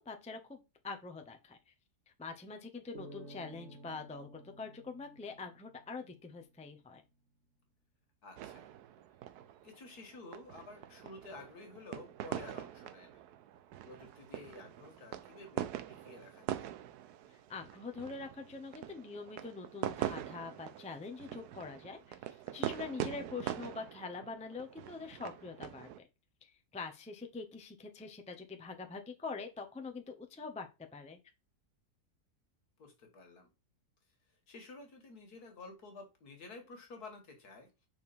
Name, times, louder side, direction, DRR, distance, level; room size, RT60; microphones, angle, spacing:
voice 1, 0.0-1.7 2.2-7.0 17.5-22.2 22.5-26.1 26.4-30.7 30.9-31.2, left 4 dB, 5° left, 5 dB, 0.6 m, -44 dB
sound 1, 2.9-6.3, right 2 dB, 45° right, 2.0 m, -53 dB
voice 2, 8.2-8.7 9.6-13.2 13.9-16.7 23.4-23.7 32.8-33.5 34.5-37.7, left 3 dB, 70° left, 4 dB, 2.3 m, -52 dB
sound 2, 8.4-26.0, right 11 dB, 80° right, 1.1 m, -43 dB
5.8 x 4.4 x 4.2 m, 0.26 s
omnidirectional pair, 1.7 m